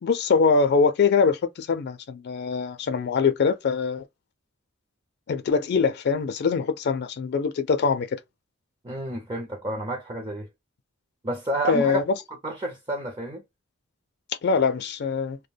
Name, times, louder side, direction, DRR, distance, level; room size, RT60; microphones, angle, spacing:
voice 1, 0.0-4.0 5.3-8.2 11.7-12.2 14.4-15.4, left 5 dB, 55° left, 0.4 m, -23 dB
voice 2, 8.8-10.5 11.2-12.0 12.4-13.4, right 1 dB, 25° right, 0.5 m, -30 dB
2.2 x 2.1 x 3.2 m
head